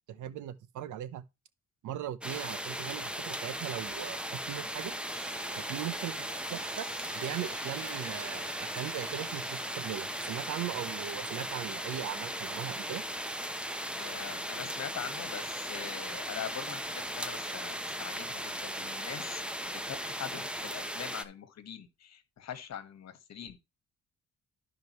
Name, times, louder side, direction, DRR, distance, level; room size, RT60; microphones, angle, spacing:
voice 1, 0.1-1.2 1.8-4.9 5.6-6.9 7.1-13.0, right 11 dB, 75° right, 0.9 m, -39 dB
sound 1, 2.2-21.2, equal, 5° right, 0.9 m, -37 dB
sound 2, 5.1-12.3, right 5 dB, 55° right, 3.0 m, -49 dB
voice 2, 14.0-23.6, left 9 dB, 60° left, 1.6 m, -43 dB
12.0 x 5.2 x 3.1 m
cardioid pair, 90°, 30 cm